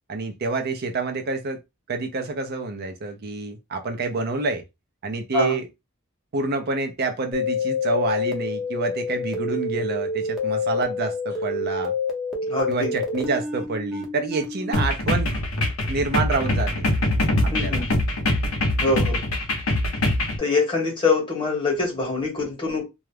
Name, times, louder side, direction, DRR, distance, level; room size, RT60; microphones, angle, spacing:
voice 1, 0.1-1.6 1.9-4.6 5.0-5.7 6.3-11.9 12.7-15.4 15.9-16.9 17.4-17.8, right 3 dB, 45° right, 0.5 m, -27 dB
sound 1, 7.3-14.8, left 4 dB, ahead, 0.6 m, -28 dB
voice 2, 12.5-12.9 17.5-17.8 18.8-19.2 20.4-22.9, left 3 dB, 25° left, 1.1 m, -24 dB
sound 2, 14.7-20.4, left 1 dB, 75° left, 0.7 m, -23 dB
2.3 x 2.0 x 3.1 m
head